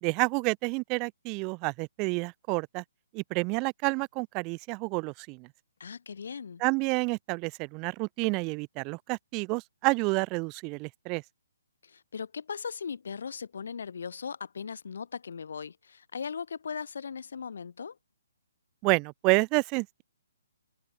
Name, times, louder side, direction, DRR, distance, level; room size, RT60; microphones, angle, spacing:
voice 1, 0.0-2.8 3.1-5.5 6.6-11.2 18.8-20.0, right 30 dB, 20° right, 4.4 m, -29 dB
voice 2, 5.8-6.6 11.8-18.0, left 6 dB, 65° left, 5.7 m, -38 dB
hypercardioid pair, 165°, 0 cm